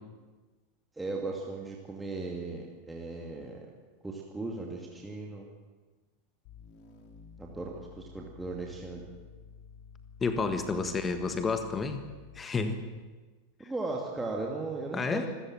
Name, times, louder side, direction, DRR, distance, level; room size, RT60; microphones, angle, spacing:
voice 1, 1.0-3.7 4.0-5.5 7.4-9.0 10.7-11.0 13.6-15.3, right 3 dB, 10° right, -1 dB, 2.5 m, -37 dB
sound 1, 6.4-12.6, left 6 dB, 45° left, 3.1 m, -52 dB
voice 2, 10.2-12.1 12.3-12.8 14.9-15.3, left 4 dB, 20° left, 9 dB, 1.6 m, -30 dB
26.5 x 15.0 x 7.5 m, 1.3 s
figure-of-eight pair, 85°, 0 cm